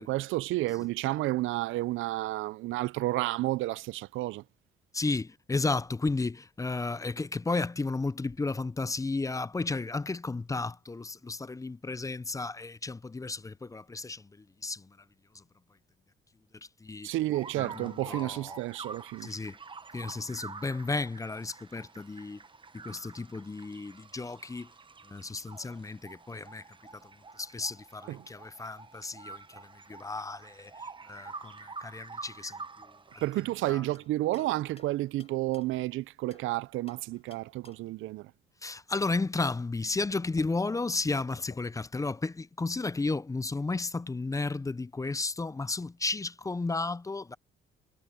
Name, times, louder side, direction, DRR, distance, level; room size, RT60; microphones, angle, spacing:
voice 1, 0.0-4.4 17.0-19.3 28.1-28.3 33.2-38.3, right 17 dB, 85° right, 0.4 m, -31 dB
voice 2, 4.9-15.0 15.3-15.4 16.8-17.1 17.6-18.6 19.2-19.6 19.9-22.4 22.7-24.7 25.1-26.6 26.9-27.0 27.4-30.7 31.1-32.6 33.6-33.8 38.6-47.4, left 3 dB, 15° left, 0.5 m, -33 dB
sound 1, 17.3-33.6, right 4 dB, 25° right, 1.1 m, -47 dB
sound 2, 33.9-36.5 36.9-38.0 40.0-40.1 40.3-42.0, left 4 dB, 30° left, 3.7 m, -57 dB
cardioid pair, 90°, 20 cm